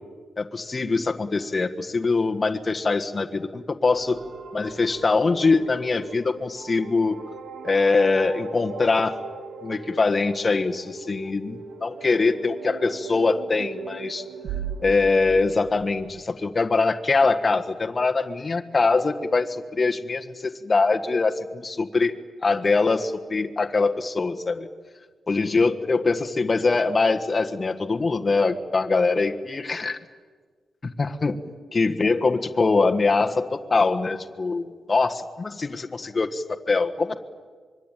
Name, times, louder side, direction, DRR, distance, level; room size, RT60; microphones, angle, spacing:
voice 1, 0.4-4.2 4.5-7.2 7.6-9.2 9.6-14.2 14.8-22.1 22.4-24.7 25.3-30.0 30.8-31.4 31.7-37.1, left 3 dB, 30° left, 5 dB, 1.5 m, -23 dB
sound 1, 4.0-16.2, right 5 dB, 75° right, 1.8 m, -39 dB
25.5 x 23.0 x 9.1 m, 1.5 s
wide cardioid pair, 145°, 0 cm